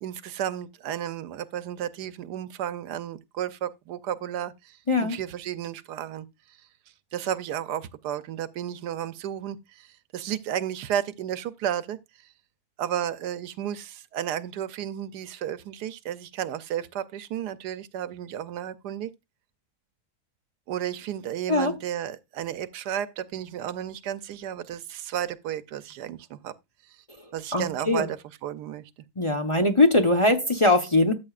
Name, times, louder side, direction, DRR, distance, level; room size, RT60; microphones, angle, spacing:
voice 1, 0.0-6.3 7.1-12.0 12.8-19.1 20.7-26.5 27.3-28.9, right 10 dB, 85° right, 1.3 m, -33 dB
voice 2, 4.9-5.2 21.5-21.7 27.2-28.1 29.2-31.1, left 2 dB, 25° left, 0.8 m, -22 dB
13.0 x 7.9 x 2.4 m
omnidirectional pair, 1.7 m